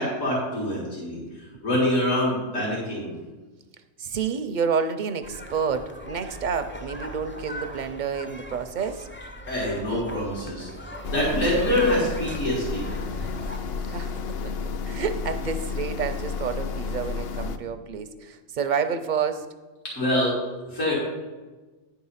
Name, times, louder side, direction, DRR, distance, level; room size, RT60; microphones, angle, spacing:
voice 1, 0.0-3.2 9.5-10.7 11.1-13.0 19.9-20.3 20.7-20.9, left 1 dB, 85° left, -6 dB, 2.9 m, -25 dB
voice 2, 4.0-9.1 13.9-14.5 14.9-19.5, right 6 dB, 55° right, 9 dB, 0.5 m, -29 dB
sound 1, 5.2-13.6, equal, 15° left, 0.4 m, -40 dB
sound 2, 11.0-17.6, left 5 dB, 60° left, 0.7 m, -31 dB
9.9 x 4.8 x 5.6 m, 1.2 s
omnidirectional pair, 1.3 m